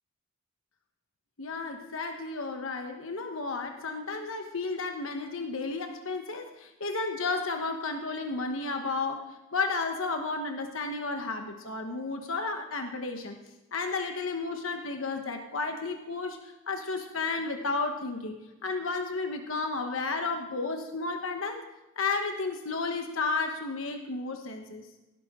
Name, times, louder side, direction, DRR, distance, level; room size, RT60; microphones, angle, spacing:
voice 1, 1.4-13.4 13.7-21.6 22.0-24.9, left 3 dB, 65° left, 4 dB, 1.2 m, -32 dB
17.5 x 11.5 x 3.7 m, 1.0 s
head